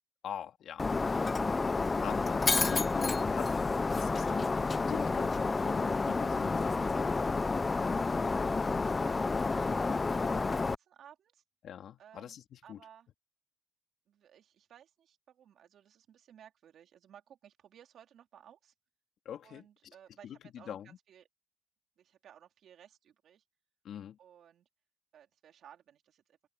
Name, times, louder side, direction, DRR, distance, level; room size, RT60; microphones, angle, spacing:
voice 1, 0.2-1.3 2.0-2.4 2.7-3.5 4.0-7.2 11.6-12.8 19.3-19.9 20.2-21.0 23.8-24.2, left 9 dB, 70° left, 3.5 m, -44 dB
Shatter, 0.8-10.8, left 3 dB, 30° left, 0.6 m, -30 dB
voice 2, 8.1-11.4 12.0-13.1 14.1-18.7 19.4-21.3 22.0-23.4 24.2-24.7 25.1-26.4, right 9 dB, 70° right, 4.1 m, -57 dB
cardioid pair, 90°, 0 cm